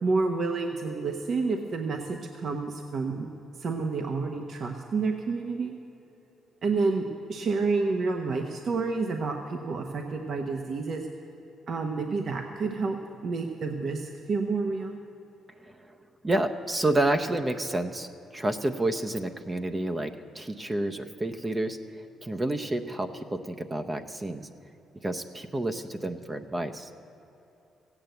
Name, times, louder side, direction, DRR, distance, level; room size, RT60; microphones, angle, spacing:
voice 1, 0.0-3.3 3.6-5.8 6.6-11.1 11.7-15.0, right 4 dB, 55° right, 4 dB, 1.0 m, -29 dB
voice 2, 16.2-18.1 18.3-24.5 25.0-26.9, right 1 dB, 20° right, 6 dB, 0.7 m, -29 dB
15.5 x 8.8 x 7.8 m, 3.0 s
cardioid pair, 90°, 0 cm